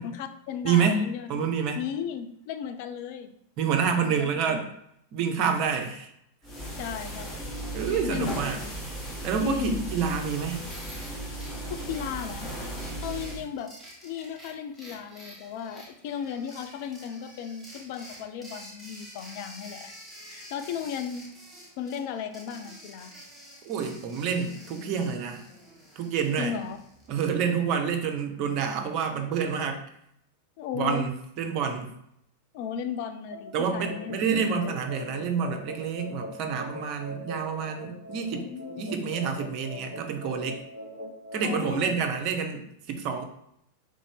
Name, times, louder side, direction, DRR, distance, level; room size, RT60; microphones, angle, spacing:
voice 1, 0.0-1.4 1.8-3.3 4.0-4.6 6.8-7.4 7.8-8.7 9.4-9.8 11.7-12.5 13.0-13.7 14.0-20.0 20.3-21.3 21.8-23.1 26.4-26.8 30.6-31.1 32.5-34.2 38.3-38.9 41.4-41.9, left 8 dB, 50° left, 8 dB, 0.3 m, -35 dB
voice 2, 0.6-1.0 1.3-1.8 3.6-4.7 5.1-6.1 7.7-8.6 9.2-10.6 23.7-25.4 26.0-26.5 27.1-29.8 30.7-31.9 33.5-38.4 38.8-40.6 41.3-43.2, right 6 dB, 40° right, 5 dB, 0.5 m, -28 dB
sound 1, 6.4-13.5, right 1 dB, 20° left, 1.0 m, -36 dB
sound 2, 10.6-27.6, equal, 5° left, 0.9 m, -49 dB
sound 3, 33.3-41.5, equal, 80° left, 0.9 m, -41 dB
3.2 x 2.5 x 3.3 m, 0.73 s
figure-of-eight pair, 90°, 0 cm